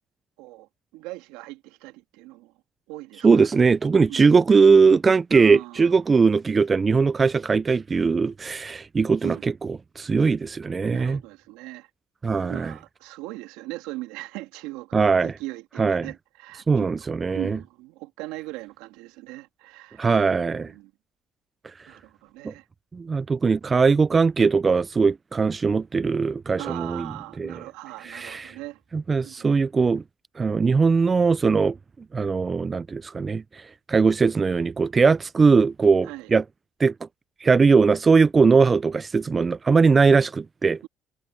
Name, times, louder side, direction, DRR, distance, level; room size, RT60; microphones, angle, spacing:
voice 1, 0.4-2.5 2.9-3.5 4.1-4.3 5.3-6.0 9.2-9.4 10.9-11.9 12.2-20.9 21.9-22.7 26.6-28.8 29.2-29.5 36.0-36.3, right 20 dB, 85° right, 2.3 m, -39 dB
voice 2, 3.2-9.5 10.0-11.2 12.2-12.7 14.9-15.3 15.8-16.1 16.7-17.6 20.0-20.7 22.4-22.5 22.9-27.1 27.4-27.5 28.0-28.5 28.9-30.0 30.4-31.8 32.1-33.6 33.9-36.4 36.8-36.9 37.4-40.8, right 4 dB, 30° right, 0.4 m, -20 dB
supercardioid pair, 80°, 0 cm